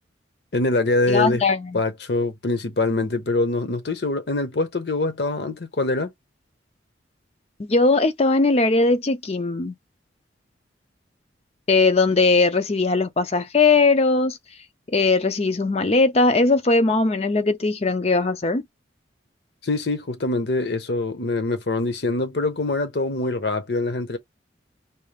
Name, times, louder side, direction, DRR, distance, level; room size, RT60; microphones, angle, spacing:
voice 1, 0.5-1.4 1.7-6.1 19.6-24.2, left 2 dB, 60° left, 0.9 m, -24 dB
voice 2, 1.1-1.8 7.6-9.7 11.7-14.4 14.9-18.6, left 3 dB, 35° left, 0.5 m, -19 dB
4.3 x 3.3 x 2.4 m
head